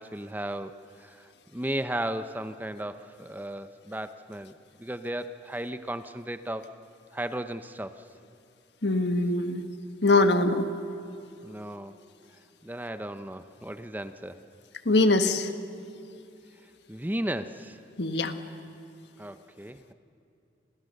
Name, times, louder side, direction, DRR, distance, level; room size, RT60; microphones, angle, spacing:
voice 1, 0.0-6.7 7.1-8.1 11.4-12.0 12.6-14.4 16.9-17.8 19.2-19.9, right 1 dB, 10° right, 10 dB, 0.7 m, -35 dB
voice 2, 8.8-9.7 10.0-10.7 14.8-15.5 18.0-18.3, left 2 dB, 70° left, 8 dB, 1.5 m, -22 dB
30.0 x 27.0 x 6.7 m, 2.7 s
head